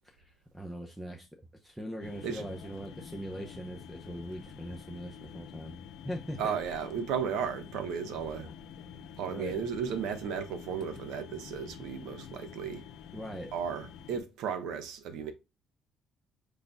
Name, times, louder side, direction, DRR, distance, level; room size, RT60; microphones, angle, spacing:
voice 1, 0.2-1.3 1.6-5.7 6.0-6.5 9.3-9.6 13.1-13.5, equal, 5° right, 0.7 m, -41 dB
sound 1, 2.0-14.2, left 8 dB, 80° left, 0.6 m, -48 dB
voice 2, 6.4-8.5 9.2-12.8 13.5-15.3, right 7 dB, 90° right, 0.9 m, -34 dB
5.1 x 4.0 x 2.3 m
cardioid pair, 140°, 0 cm